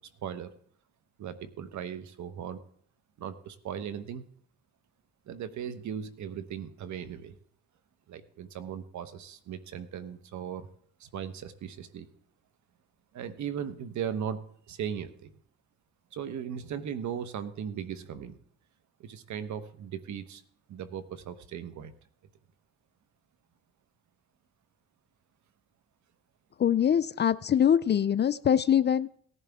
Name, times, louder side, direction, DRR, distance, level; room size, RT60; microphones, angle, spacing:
voice 1, 0.2-0.5 1.2-2.6 3.2-4.2 5.3-7.4 8.1-10.7 11.0-12.1 13.1-14.4 14.7-15.3 16.1-18.4 19.0-20.4 20.7-21.9, right 8 dB, 70° right, 12 dB, 1.2 m, -37 dB
voice 2, 26.6-29.1, left 9 dB, 35° left, 17 dB, 0.4 m, -23 dB
17.5 x 11.0 x 3.6 m, 0.62 s
cardioid pair, 90°, 30 cm